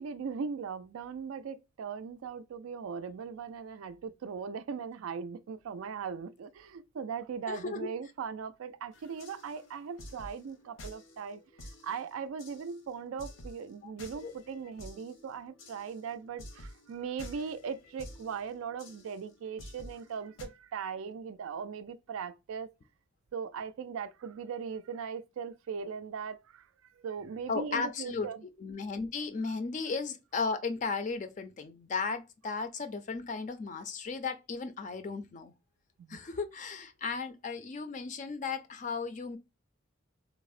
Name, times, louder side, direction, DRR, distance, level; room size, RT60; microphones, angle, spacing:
voice 1, 0.0-22.7 23.3-26.7 27.0-28.4 36.0-36.2, right 6 dB, 90° right, 0.3 m, -39 dB
voice 2, 7.5-7.9 13.8-13.9 14.2-14.3 27.5-28.3 28.6-35.5 36.1-39.4, left 4 dB, 40° left, 0.4 m, -35 dB
sound 1, 8.9-20.5, left 1 dB, 80° left, 0.7 m, -51 dB
3.4 x 2.0 x 2.3 m
head